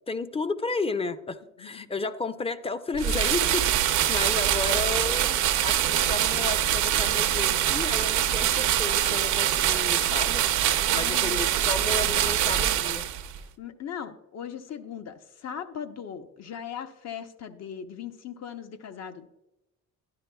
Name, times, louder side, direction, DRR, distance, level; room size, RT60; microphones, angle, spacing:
voice 1, 0.1-10.4 10.9-13.1, left 3 dB, 20° left, 12 dB, 0.5 m, -32 dB
sound 1, 3.0-13.4, right 11 dB, 75° right, 0.7 m, -24 dB
voice 2, 10.9-11.4 13.6-19.3, left 8 dB, 60° left, 8 dB, 0.8 m, -39 dB
11.5 x 10.5 x 2.3 m, 0.93 s
cardioid pair, 90°, 30 cm